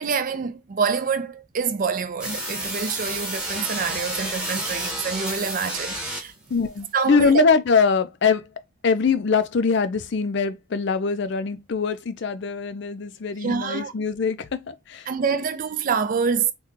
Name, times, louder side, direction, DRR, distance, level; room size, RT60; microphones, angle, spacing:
voice 1, 0.0-6.3 6.9-7.4 13.4-13.9 15.1-16.5, right 5 dB, 40° right, 0.4 m, -26 dB
sound 1, 2.2-6.5, right 1 dB, 5° right, 0.9 m, -30 dB
voice 2, 6.5-8.5 8.8-15.1, left 5 dB, 60° left, 0.4 m, -22 dB
2.9 x 2.3 x 3.7 m
head